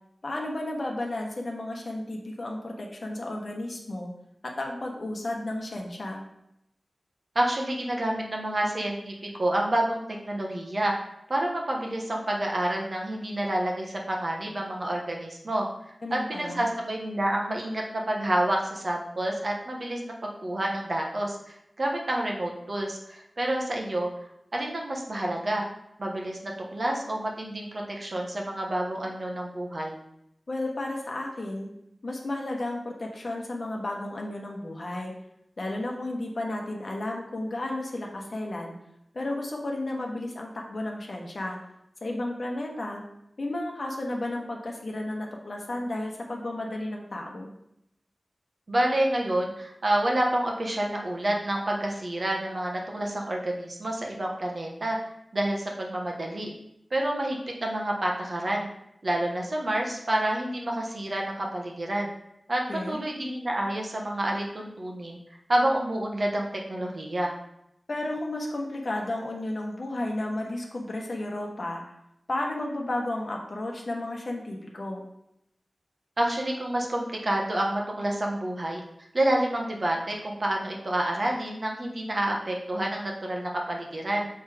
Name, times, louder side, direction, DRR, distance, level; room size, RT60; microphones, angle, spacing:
voice 1, 0.2-4.1 4.4-6.2 16.0-16.7 30.5-31.7 32.0-35.1 35.6-38.8 39.1-41.6 42.0-43.0 43.4-47.5 62.7-63.0 67.9-71.8 72.3-75.1, left 1 dB, 55° left, 0 dB, 1.2 m, -33 dB
voice 2, 7.3-10.0 10.3-10.9 11.3-15.7 16.1-24.1 24.5-25.6 26.0-29.9 48.7-55.0 55.3-56.5 56.9-58.7 59.0-62.1 62.5-65.2 65.5-67.3 76.2-78.8 79.1-84.3, right 1 dB, 50° right, 0 dB, 1.2 m, -28 dB
6.4 x 3.5 x 4.9 m, 0.80 s
wide cardioid pair, 90°, 0 cm